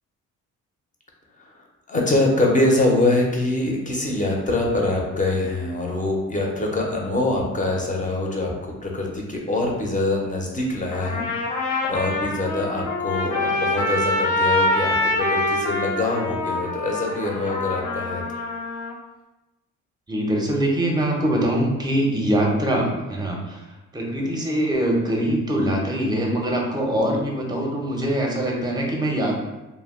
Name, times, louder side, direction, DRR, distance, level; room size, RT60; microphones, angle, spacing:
voice 1, 1.4-18.2, left 2 dB, 25° left, -1 dB, 0.6 m, -24 dB
Trumpet, 10.9-18.9, left 2 dB, 90° left, 0.6 m, -25 dB
voice 2, 20.1-23.6 23.9-29.4, right 1 dB, 15° right, -1 dB, 0.6 m, -23 dB
2.2 x 2.1 x 3.5 m, 1.0 s
cardioid pair, 90°, 30 cm